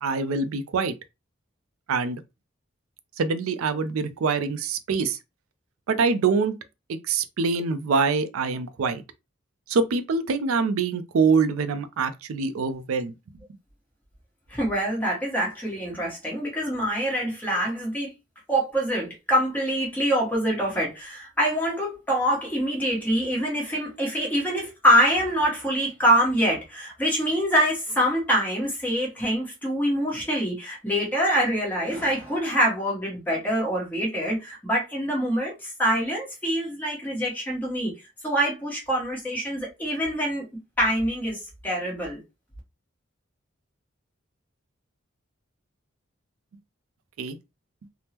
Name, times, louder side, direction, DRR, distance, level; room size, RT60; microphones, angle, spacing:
voice 1, 0.0-0.9 1.9-2.2 3.2-5.2 5.9-6.6 6.9-9.0 9.7-13.1 47.2-47.4, right 4 dB, 90° right, 0.4 m, -24 dB
voice 2, 14.5-18.1 18.5-37.9 38.2-40.4 40.8-42.2, equal, 10° left, 1.0 m, -25 dB
3.5 x 2.0 x 2.8 m
head